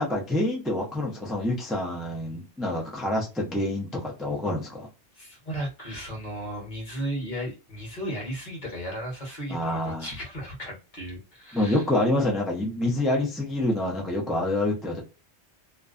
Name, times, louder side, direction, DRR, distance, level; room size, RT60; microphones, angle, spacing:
voice 1, 0.0-4.9 9.5-10.1 11.5-15.0, left 1 dB, ahead, 0.4 m, -27 dB
voice 2, 5.1-11.8, equal, 45° left, 1.1 m, -35 dB
2.5 x 2.2 x 2.4 m
omnidirectional pair, 1.2 m